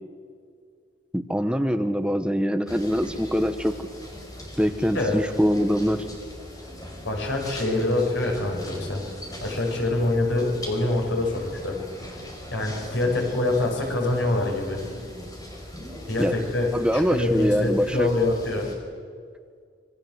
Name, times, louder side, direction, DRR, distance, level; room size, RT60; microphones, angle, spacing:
voice 1, 1.1-3.8 4.6-6.1 16.2-16.3 16.7-18.1, equal, 5° right, 8 dB, 0.9 m, -23 dB
sound 1, 2.7-18.7, equal, 20° left, 5.0 m, -40 dB
voice 2, 7.0-11.8 12.5-14.8 16.1-18.7, left 2 dB, 80° left, 0 dB, 6.7 m, -25 dB
26.5 x 23.0 x 8.0 m, 2.2 s
head